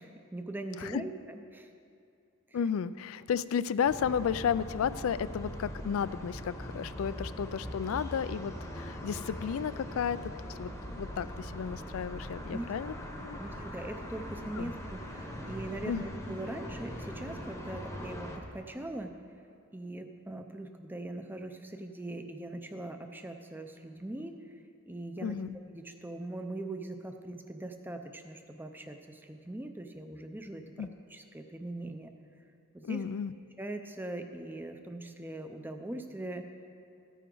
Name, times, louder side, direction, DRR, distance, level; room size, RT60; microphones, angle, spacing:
voice 1, 0.0-1.7 2.5-2.6 12.5-12.7 13.4-19.2 19.7-24.4 24.9-25.4 25.7-32.1 32.7-33.0 33.6-36.5, right 1 dB, 10° right, 6 dB, 0.5 m, -41 dB
voice 2, 2.5-13.4 14.6-14.7 15.8-16.0 25.2-25.6 30.8-30.9 32.8-33.3, left 7 dB, 70° left, 16 dB, 0.3 m, -33 dB
sound 1, 3.8-18.4, equal, 15° left, 0.9 m, -41 dB
14.5 x 9.2 x 3.9 m, 2.4 s
head